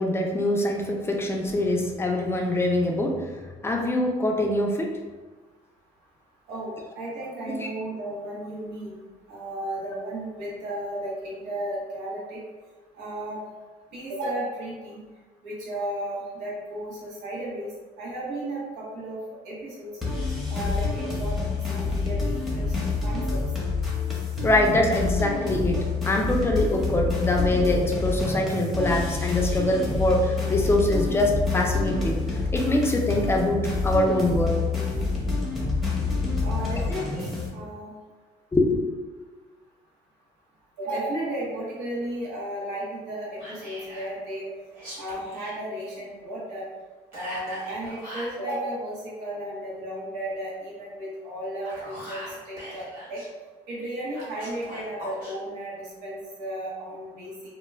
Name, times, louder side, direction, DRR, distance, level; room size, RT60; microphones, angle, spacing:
voice 1, 0.0-3.1 3.6-4.9 7.5-7.7 24.4-25.8 26.1-32.2 32.5-34.6 38.5-38.8, left 1 dB, 15° left, 1 dB, 0.4 m, -24 dB
voice 2, 6.5-8.9 9.3-12.4 13.0-13.4 13.9-15.0 15.4-17.7 18.0-19.2 19.4-19.9 20.5-23.4 36.4-37.9 40.8-44.5 45.0-46.6 47.1-52.8 53.1-53.2 53.7-57.3, right 1 dB, 85° right, -7 dB, 0.9 m, -34 dB
sound 1, 20.0-37.5, left 4 dB, ahead, 0.8 m, -27 dB
Whispering, 43.4-44.1 44.7-45.6 47.1-48.4 51.4-53.3 54.1-55.3, equal, 55° right, 1.2 m, -40 dB
2.2 x 2.1 x 3.2 m, 1.3 s
cardioid pair, 110°, 17 cm